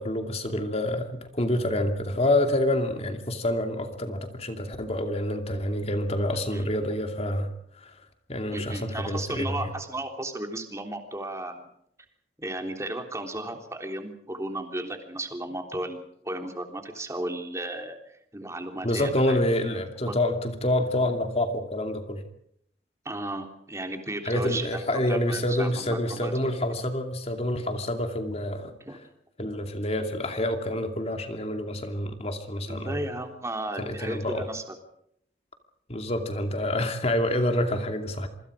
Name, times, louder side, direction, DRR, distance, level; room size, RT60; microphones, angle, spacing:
voice 1, 0.0-7.5 7.8-7.9 8.3-9.7 18.8-22.2 24.2-28.7 29.4-33.0 33.8-34.4 35.9-38.3, left 1 dB, 35° left, 6 dB, 2.6 m, -27 dB
voice 2, 6.3-6.7 8.5-11.7 12.4-19.4 20.0-20.2 23.0-26.3 28.8-29.0 32.7-34.6, right 1 dB, 15° right, 4 dB, 3.4 m, -34 dB
27.0 x 25.0 x 5.0 m, 0.70 s
head